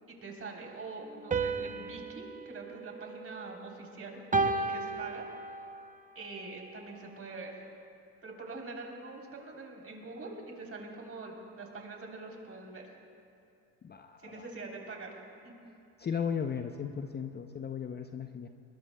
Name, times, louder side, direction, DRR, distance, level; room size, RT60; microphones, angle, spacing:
voice 1, 0.1-5.3 6.2-7.6 8.2-12.8 14.2-15.2 15.4-15.5, right 3 dB, 35° right, 0 dB, 3.5 m, -44 dB
sound 1, 1.3-3.8 4.3-5.9, right 3 dB, 20° right, 0.8 m, -34 dB
voice 2, 13.8-14.5 16.0-18.5, left 7 dB, 25° left, 7 dB, 0.6 m, -36 dB
21.0 x 20.5 x 2.2 m, 2.5 s
supercardioid pair, 85°, 39 cm